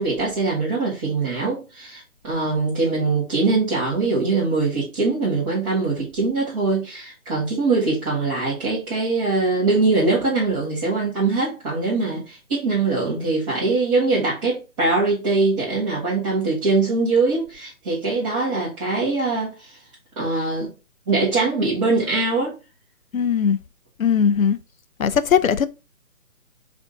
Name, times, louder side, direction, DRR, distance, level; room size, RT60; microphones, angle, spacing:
voice 1, 0.0-19.8 20.2-20.7 21.1-22.5, right 3 dB, 20° right, 1.3 m, -22 dB
voice 2, 23.1-23.6 24.0-24.6 25.0-25.7, left 7 dB, 70° left, 0.5 m, -19 dB
5.0 x 2.6 x 3.6 m
figure-of-eight pair, 140°, 43 cm